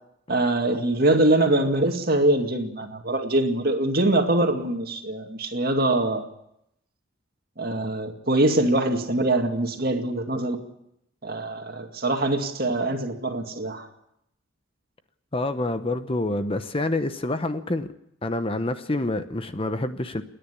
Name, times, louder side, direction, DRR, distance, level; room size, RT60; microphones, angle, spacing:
voice 1, 0.3-6.3 7.6-10.6 11.2-13.9, right 2 dB, 50° right, 5 dB, 2.2 m, -23 dB
voice 2, 15.3-17.9 18.2-20.2, left 2 dB, 25° left, 10 dB, 0.8 m, -27 dB
29.0 x 10.5 x 10.0 m, 0.79 s
head